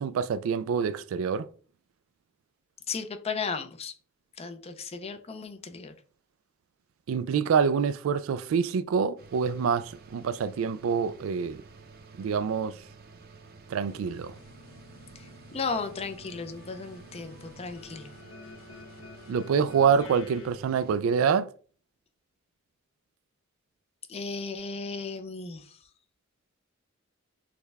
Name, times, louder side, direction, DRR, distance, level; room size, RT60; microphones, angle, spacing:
voice 1, 0.0-1.5 7.1-11.6 12.2-12.7 13.7-14.3 19.3-21.5, right 6 dB, 85° right, 0.3 m, -26 dB
voice 2, 2.9-3.9 4.4-5.9 15.5-18.1 24.1-25.6, left 4 dB, 30° left, 0.5 m, -35 dB
sound 1, 9.2-21.0, right 4 dB, 50° right, 0.6 m, -51 dB
sound 2, 13.8-20.5, left 3 dB, 80° left, 0.6 m, -50 dB
6.5 x 2.2 x 3.4 m
head